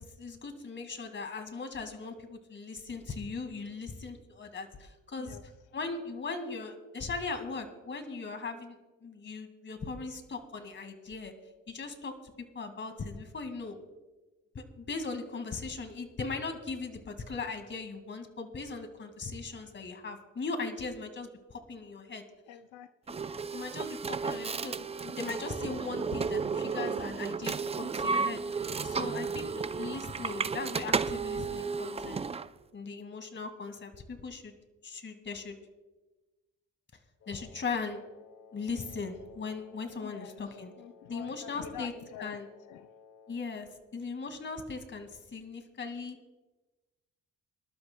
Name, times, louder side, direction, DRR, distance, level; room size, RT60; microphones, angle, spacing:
voice 1, 0.0-5.4 5.7-11.3 11.7-12.2 12.5-13.8 14.5-22.2 23.5-29.5 29.8-32.3 32.7-34.5 34.8-35.6 37.3-38.0 38.5-40.7 41.1-41.9 42.2-42.5 43.3-46.2, left 4 dB, 40° left, 7 dB, 2.1 m, -39 dB
voice 2, 22.5-23.3 28.6-29.2 40.0-40.4 40.8-42.4 42.7-42.9, left 10 dB, 85° left, 11 dB, 0.5 m, -47 dB
sound 1, 23.1-32.5, right 5 dB, 20° right, 0.4 m, -33 dB
Wind instrument woodwind instrument, 37.2-43.7, left 6 dB, 55° left, 2.4 m, -57 dB
25.0 x 12.5 x 2.3 m, 1.2 s
cardioid pair, 90°, 30 cm